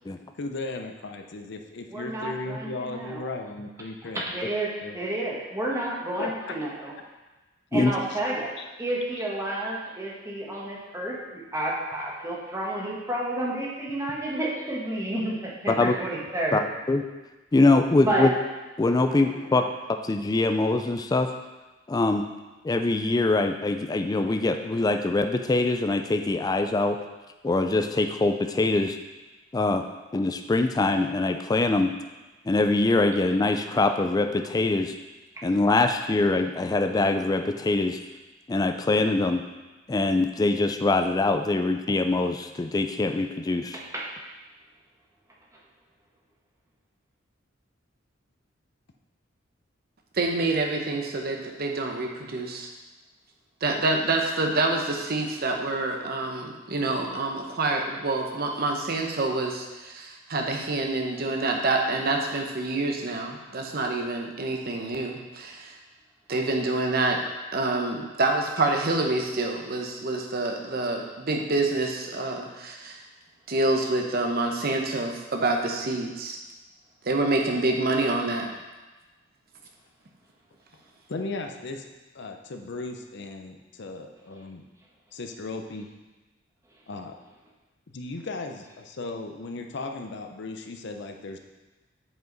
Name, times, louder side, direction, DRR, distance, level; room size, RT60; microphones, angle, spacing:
voice 1, 0.4-4.3 4.8-5.0 6.2-6.5 8.1-8.2 8.6-8.7 81.1-81.9 82.1-84.6 85.1-85.9 86.9-87.1 87.9-91.4, left 3 dB, 60° left, 4 dB, 0.6 m, -36 dB
voice 2, 1.9-3.2 4.1-6.9 7.7-8.5 8.8-16.6 18.0-18.3 19.0-19.6 35.4-35.5 43.7-44.0, right 1 dB, 15° right, -3 dB, 1.2 m, -31 dB
voice 3, 17.5-18.3 18.8-19.6 20.0-21.3 21.9-22.2 22.6-27.0 27.4-29.0 29.5-29.8 30.1-31.9 32.5-34.9 35.4-38.0 38.5-39.4 39.9-43.8, left 2 dB, 20° left, 6 dB, 0.3 m, -23 dB
voice 4, 50.1-52.7 53.6-65.7 66.3-67.2 67.5-73.0 73.5-76.4 77.0-78.5, right 2 dB, 50° right, 2 dB, 0.9 m, -27 dB
7.6 x 4.9 x 3.9 m, 1.2 s
head